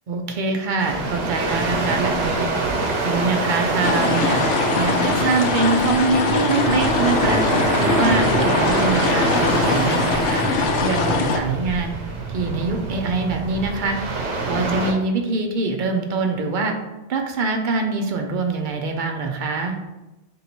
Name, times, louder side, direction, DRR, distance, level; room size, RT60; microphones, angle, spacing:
voice 1, 0.1-2.5 3.0-4.4 4.8-7.4 7.8-11.9 12.3-14.0 14.4-16.7 17.1-19.8, right 3 dB, 55° right, 3 dB, 0.6 m, -24 dB
sound 1, 0.8-14.9, right 3 dB, 75° right, 1.0 m, -25 dB
sound 2, 3.8-11.4, left 4 dB, 85° left, 0.9 m, -22 dB
3.7 x 2.7 x 4.2 m, 0.99 s
omnidirectional pair, 1.2 m